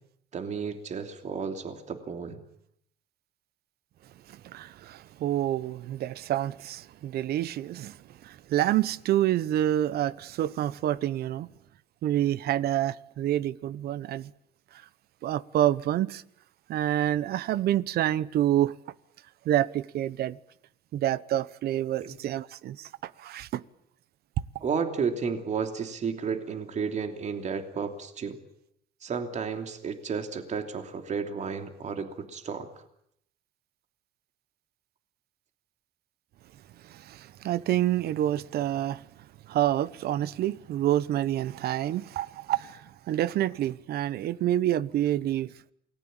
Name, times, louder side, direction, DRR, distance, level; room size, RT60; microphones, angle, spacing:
voice 1, 0.3-2.4 22.0-22.2 24.6-28.4 29.0-32.7, right 6 dB, 45° right, 3.0 m, -32 dB
voice 2, 4.3-8.0 8.2-11.5 12.0-14.3 15.2-16.2 16.7-18.8 19.4-20.4 20.9-23.6 36.8-39.0 39.5-45.5, right 12 dB, 70° right, 1.0 m, -28 dB
28.0 x 20.0 x 9.0 m
cardioid pair, 110°, 17 cm